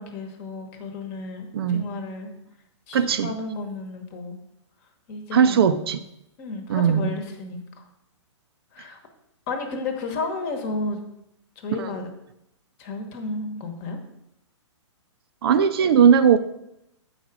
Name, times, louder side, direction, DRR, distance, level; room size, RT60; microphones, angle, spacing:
voice 1, 0.0-2.3 2.9-4.4 5.1-5.7 6.4-7.8 8.7-9.0 9.5-11.0 11.6-12.1 12.8-14.0, left 3 dB, 30° left, 5 dB, 1.1 m, -32 dB
voice 2, 1.5-1.8 2.9-3.3 5.3-6.0 6.7-7.1 11.8-11.9 15.4-16.4, right 7 dB, 55° right, 10 dB, 0.5 m, -18 dB
8.0 x 4.8 x 4.8 m, 0.82 s
hypercardioid pair, 155°, 16 cm